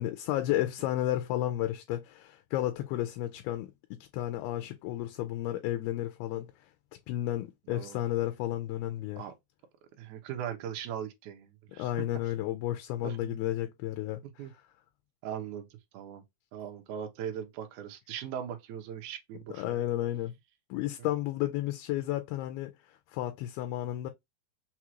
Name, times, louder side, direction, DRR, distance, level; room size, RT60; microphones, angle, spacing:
voice 1, 0.0-6.5 7.1-9.2 11.8-14.5 19.5-20.3 20.7-22.7 23.1-24.1, left 14 dB, 90° left, 2.5 m, -32 dB
voice 2, 7.7-8.0 9.2-9.3 10.0-11.9 13.0-13.4 14.2-14.5 15.2-15.7 15.9-16.2 16.5-19.8, right 9 dB, 75° right, 2.0 m, -39 dB
6.1 x 2.4 x 2.9 m
omnidirectional pair, 4.3 m